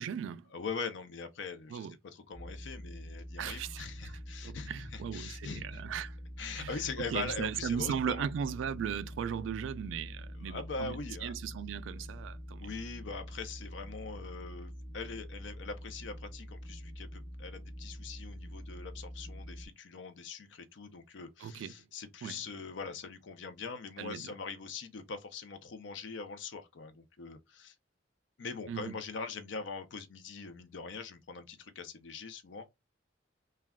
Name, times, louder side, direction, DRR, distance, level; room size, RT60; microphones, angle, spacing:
voice 1, 0.0-0.5 1.7-1.9 3.4-4.1 4.4-6.2 6.6-6.8 7.1-12.7 21.4-21.7 22.2-22.4 24.0-24.3 28.7-29.0, right 8 dB, 90° right, 0.3 m, -37 dB
voice 2, 0.5-1.9 2.1-5.8 6.4-8.3 10.4-11.3 12.6-27.7 28.4-32.7, left 4 dB, 75° left, 0.5 m, -42 dB
sound 1, 2.3-19.7, equal, 15° left, 0.6 m, -45 dB
2.3 x 2.2 x 3.4 m
head